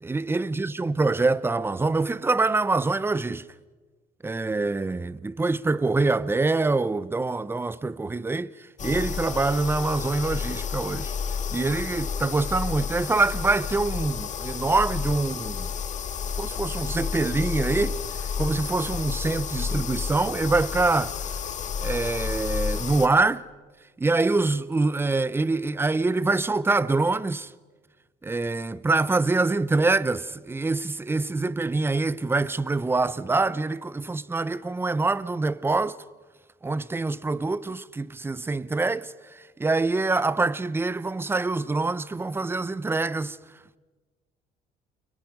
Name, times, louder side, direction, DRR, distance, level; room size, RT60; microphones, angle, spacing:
voice 1, 0.0-3.4 4.2-11.1 11.5-15.7 16.4-21.1 21.8-23.4 24.0-27.5 28.2-36.0 36.6-43.4, right 3 dB, 15° right, 0.7 m, -25 dB
sound 1, 8.8-23.1, left 6 dB, 45° left, 1.7 m, -31 dB
30.0 x 24.0 x 5.4 m
cardioid pair, 110°, 17 cm